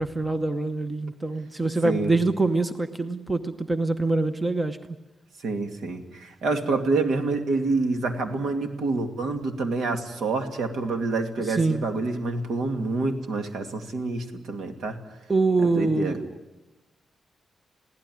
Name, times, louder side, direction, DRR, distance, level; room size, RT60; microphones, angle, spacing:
voice 1, 0.0-4.8 11.5-11.8 15.3-16.3, right 3 dB, 15° right, 9 dB, 0.9 m, -24 dB
voice 2, 5.4-15.0 15.8-16.2, right 3 dB, 80° right, 5 dB, 2.5 m, -27 dB
22.5 x 16.5 x 9.5 m, 1.1 s
wide cardioid pair, 170°, 0 cm